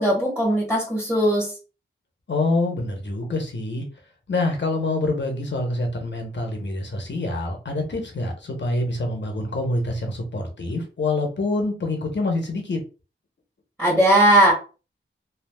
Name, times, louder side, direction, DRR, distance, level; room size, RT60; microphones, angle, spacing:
voice 1, 0.0-1.5 13.8-14.5, right 1 dB, 5° right, -4 dB, 1.2 m, -18 dB
voice 2, 2.3-3.9 4.3-12.8, left 2 dB, 60° left, 2 dB, 0.9 m, -26 dB
3.3 x 2.3 x 2.2 m, 0.34 s
wide cardioid pair, 60°, 21 cm